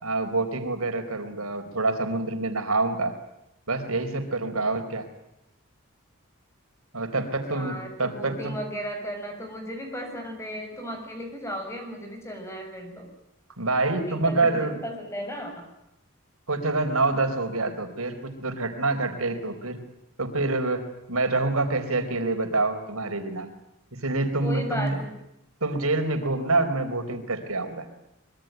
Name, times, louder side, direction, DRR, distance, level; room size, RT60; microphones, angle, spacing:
voice 1, 0.0-3.1 3.7-5.1 6.9-8.5 13.6-14.8 16.5-19.8 20.2-23.5 23.9-25.0 25.6-27.9, right 2 dB, 80° right, 7 dB, 4.3 m, -26 dB
voice 2, 7.5-13.1 13.9-15.7 24.4-25.1, equal, 10° left, 4 dB, 7.0 m, -35 dB
25.0 x 23.0 x 9.2 m, 0.85 s
head